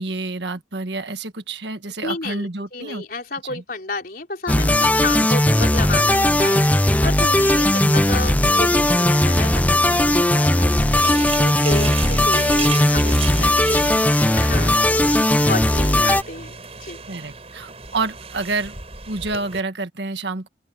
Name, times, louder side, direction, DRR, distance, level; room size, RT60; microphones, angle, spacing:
voice 1, 0.0-3.0 3.5-3.6 5.4-5.5 7.8-8.1 17.1-18.8 19.1-20.5, right 3 dB, 70° right, 1.6 m, -28 dB
voice 2, 2.0-15.1 15.4-17.0, left 2 dB, 50° left, 4.3 m, -31 dB
sound 1, 4.5-16.2, left 1 dB, 10° left, 0.7 m, -17 dB
sound 2, 5.5-19.6, right 5 dB, 35° right, 5.5 m, -36 dB
open air
head